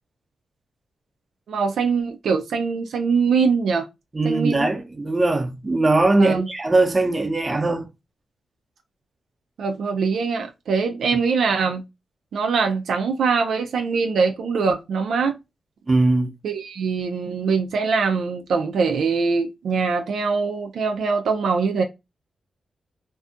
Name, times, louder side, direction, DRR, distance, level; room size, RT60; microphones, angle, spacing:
voice 1, 1.5-3.9 4.2-4.7 6.2-6.5 9.6-11.8 12.3-15.3 16.4-21.8, right 5 dB, 80° right, 0.3 m, -22 dB
voice 2, 4.1-7.8 15.9-16.3, right 2 dB, 30° right, 0.7 m, -20 dB
2.6 x 2.3 x 2.4 m
cardioid pair, 55°, 0 cm